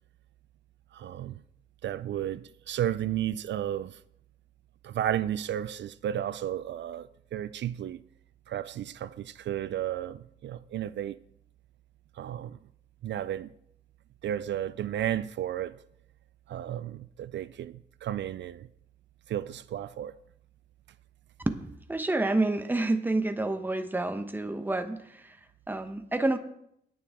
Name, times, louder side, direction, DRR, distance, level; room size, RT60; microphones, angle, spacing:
voice 1, 0.9-1.4 1.8-4.0 4.8-8.0 8.5-11.2 12.2-12.6 13.0-13.5 14.2-15.8 16.5-18.7 19.3-20.1, right 11 dB, 70° right, 0.4 m, -33 dB
voice 2, 21.5-25.4 25.7-26.4, right 2 dB, 10° right, 0.9 m, -29 dB
19.0 x 7.0 x 3.6 m
cardioid pair, 110°, 19 cm